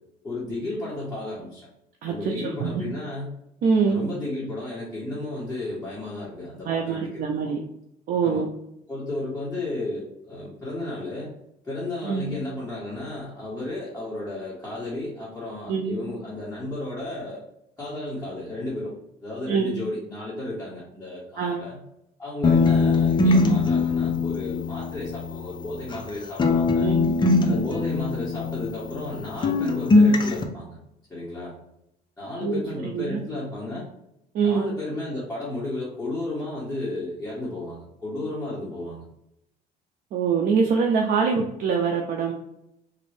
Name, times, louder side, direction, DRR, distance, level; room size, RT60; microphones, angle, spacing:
voice 1, 0.2-1.7 2.1-3.3 3.9-7.6 8.2-8.5 8.9-11.3 11.6-17.4 17.8-18.9 19.2-21.8 22.2-26.9 27.4-30.8 31.1-31.5 32.2-33.8 34.4-39.0, left 2 dB, 10° left, -9 dB, 1.5 m, -33 dB
voice 2, 2.0-2.9 3.6-4.0 6.6-7.6 8.1-8.5 12.0-12.3 15.7-16.0 19.5-19.8 21.4-21.6 26.8-27.2 32.4-32.6 32.9-33.2 34.3-34.6 40.1-42.3, right 5 dB, 60° right, 2 dB, 0.5 m, -24 dB
sound 1, 22.4-26.1 26.4-29.2 29.4-30.4, left 3 dB, 25° left, 0.6 m, -21 dB
3.8 x 2.6 x 3.4 m, 0.80 s
cardioid pair, 110°, 17 cm